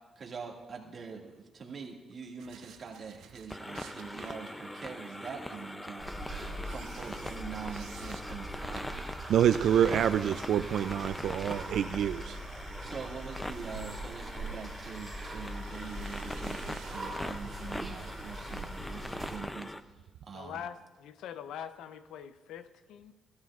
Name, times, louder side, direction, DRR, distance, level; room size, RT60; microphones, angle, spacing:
voice 1, 0.2-6.4 6.7-9.0 12.8-19.7 20.2-20.6, right 6 dB, 45° right, 0 dB, 2.0 m, -44 dB
sound 1, 2.4-19.5, right 8 dB, 85° right, 0.9 m, -54 dB
sound 2, 3.5-19.8, left 1 dB, 10° left, 0.5 m, -42 dB
sound 3, 6.0-19.4, right 1 dB, 10° right, 2.7 m, -42 dB
voice 2, 9.3-12.4, right 9 dB, 70° right, 11 dB, 0.3 m, -27 dB
voice 3, 20.3-23.1, left 8 dB, 85° left, 12 dB, 0.6 m, -43 dB
18.0 x 12.5 x 2.4 m, 1.3 s
cardioid pair, 90°, 0 cm